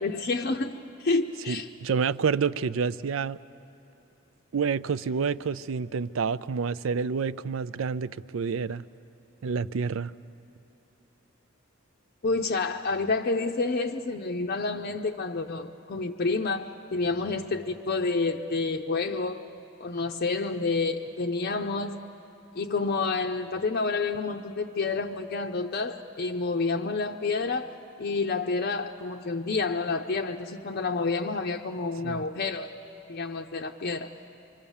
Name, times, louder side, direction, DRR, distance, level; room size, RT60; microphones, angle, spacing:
voice 1, 0.0-1.7 12.2-19.4 19.8-22.0 22.6-32.7 33.1-34.1, left 3 dB, 50° left, 3 dB, 0.6 m, -29 dB
voice 2, 1.5-3.4 4.5-8.8 9.4-10.1 32.0-32.2, right 5 dB, 70° right, 16 dB, 0.5 m, -28 dB
25.0 x 24.5 x 7.2 m, 2.9 s
head